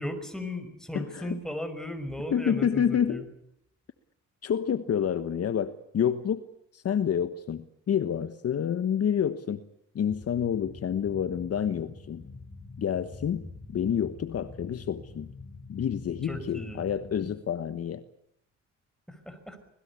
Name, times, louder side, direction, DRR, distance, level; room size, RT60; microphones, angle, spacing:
voice 1, 0.0-3.2 16.2-16.9 19.1-19.6, left 1 dB, ahead, 9 dB, 5.7 m, -36 dB
voice 2, 0.9-1.4 2.3-3.3 4.4-6.4 6.7-9.6 9.9-12.2 12.8-15.3 15.7-18.0, left 8 dB, 55° left, 11 dB, 1.3 m, -28 dB
sound 1, 10.1-17.3, left 3 dB, 25° left, 5.0 m, -46 dB
26.0 x 20.0 x 8.4 m, 0.75 s
cardioid pair, 90°, 30 cm